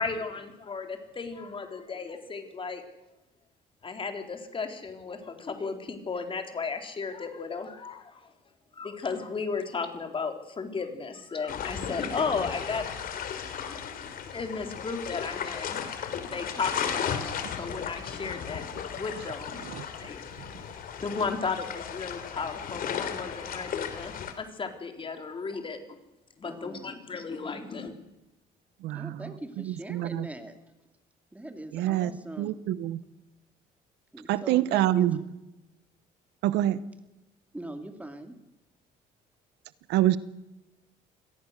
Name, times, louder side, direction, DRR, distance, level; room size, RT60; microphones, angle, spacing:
voice 1, 0.0-2.8 3.8-8.3 8.7-12.8 14.3-15.8 16.2-18.6 18.9-20.2 20.7-25.8 26.4-27.9, left 4 dB, 30° left, 5 dB, 3.7 m, -35 dB
sound 1, 11.5-24.3, left 7 dB, 60° left, 3.2 m, -35 dB
voice 2, 26.4-26.9 28.9-30.6 31.3-32.5 34.1-35.2 37.5-38.3, right 1 dB, 10° right, 7 dB, 2.6 m, -41 dB
voice 3, 28.8-29.3 29.7-30.3 31.7-32.1 32.4-33.0 34.3-35.2 36.4-36.8 39.9-40.2, right 14 dB, 85° right, 16 dB, 1.0 m, -26 dB
25.0 x 18.0 x 6.6 m, 0.96 s
cardioid pair, 110°, 17 cm